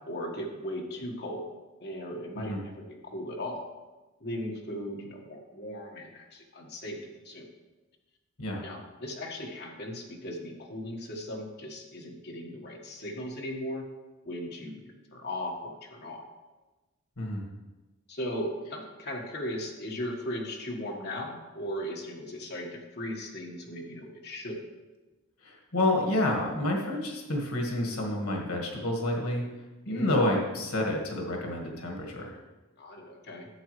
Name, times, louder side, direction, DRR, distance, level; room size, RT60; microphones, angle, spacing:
voice 1, 0.0-1.4 1.8-2.7 3.0-3.6 4.2-7.0 7.2-7.5 8.6-13.9 14.2-14.8 15.1-16.2 18.1-24.6 29.9-30.2 32.8-33.5, left 1 dB, 50° left, 0 dB, 1.5 m, -37 dB
voice 2, 25.4-29.4 29.8-32.4, left 1 dB, 90° left, 0 dB, 1.7 m, -29 dB
11.5 x 7.7 x 3.2 m, 1.2 s
head